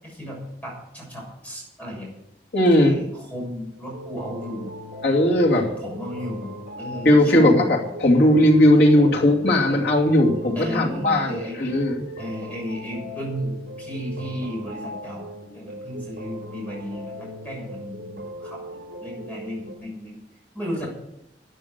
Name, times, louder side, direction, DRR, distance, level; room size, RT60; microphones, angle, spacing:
voice 1, 0.0-2.1 2.8-4.7 5.5-7.7 9.4-9.6 10.6-11.6 12.2-15.2 15.5-18.6 19.0-20.2 20.5-20.9, equal, 10° left, -2 dB, 6.9 m, -34 dB
voice 2, 2.5-2.9 5.0-5.7 7.0-12.0, left 1 dB, 65° left, -1 dB, 2.7 m, -18 dB
sound 1, 3.9-19.8, equal, 60° right, 3.6 m, -38 dB
12.5 x 10.0 x 6.7 m, 0.83 s
head